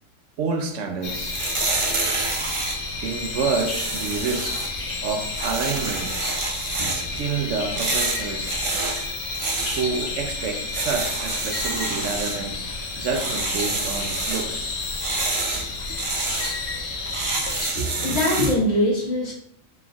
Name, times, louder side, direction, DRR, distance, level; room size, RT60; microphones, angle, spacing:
voice 1, 0.4-1.4 3.0-4.6 5.0-6.2 6.9-8.6 9.8-12.6 13.0-14.8, right 5 dB, 80° right, 1.0 m, -28 dB
sound 1, 1.0-17.7, left 3 dB, 90° left, 1.2 m, -31 dB
sound 2, 1.0-18.6, right 3 dB, 40° right, 0.5 m, -29 dB
voice 2, 17.7-19.3, left 1 dB, 60° left, 1.9 m, -22 dB
4.4 x 4.4 x 2.3 m
omnidirectional pair, 1.3 m